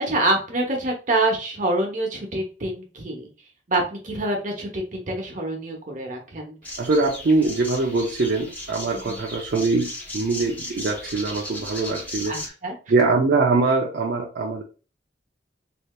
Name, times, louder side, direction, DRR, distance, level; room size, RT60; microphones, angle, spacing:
voice 1, 0.0-3.3 3.7-6.6 8.9-9.2 12.2-12.7, right 2 dB, 45° right, 1 dB, 1.0 m, -26 dB
sound 1, 6.6-12.5, left 1 dB, 10° left, 0.9 m, -36 dB
voice 2, 6.8-12.5 12.9-14.6, right 3 dB, 60° right, 0 dB, 0.5 m, -23 dB
3.3 x 2.8 x 2.3 m, 0.35 s
head